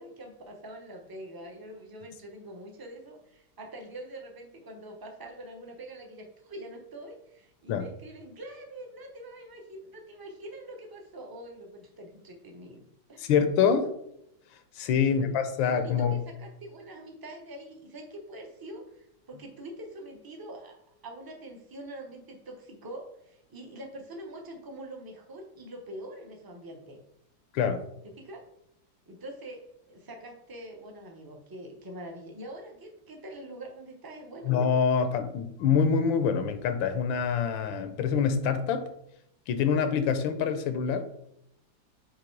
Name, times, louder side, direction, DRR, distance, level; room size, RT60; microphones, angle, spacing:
voice 1, 0.0-12.8 13.1-13.3 15.0-15.4 15.6-27.0 28.0-28.4 29.1-34.5, right 1 dB, 25° right, 2 dB, 0.4 m, -44 dB
voice 2, 13.2-13.9 14.8-16.2 27.5-27.8 34.5-38.9 39.5-41.0, left 6 dB, 85° left, 9 dB, 1.4 m, -25 dB
7.9 x 3.0 x 4.6 m, 0.77 s
omnidirectional pair, 2.1 m